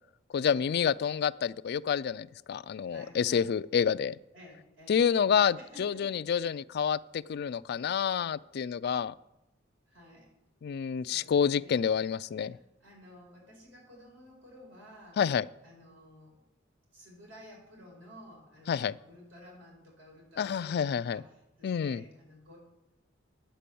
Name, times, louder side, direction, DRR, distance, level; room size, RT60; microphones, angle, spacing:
voice 1, 0.3-4.2 4.9-9.1 10.6-12.6 15.2-15.5 18.7-19.0 20.4-21.2 21.6-22.0, left 7 dB, 55° left, 16 dB, 0.3 m, -28 dB
voice 2, 2.9-3.5 4.3-5.0 5.6-6.3 9.9-10.3 11.1-11.9 12.4-15.2 15.6-16.4 16.9-22.6, left 1 dB, 90° right, -2 dB, 5.0 m, -53 dB
10.0 x 8.3 x 6.9 m, 0.91 s
head